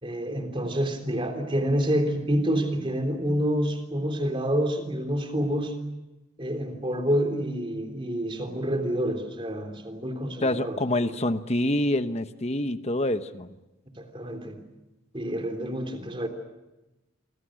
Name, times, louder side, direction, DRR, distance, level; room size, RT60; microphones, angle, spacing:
voice 1, 0.0-5.8 6.4-11.1 14.0-14.6 15.1-16.3, equal, 25° right, 6 dB, 3.5 m, -28 dB
voice 2, 10.4-13.5, left 1 dB, 30° left, 10 dB, 1.1 m, -26 dB
28.0 x 25.0 x 6.5 m, 1.0 s
head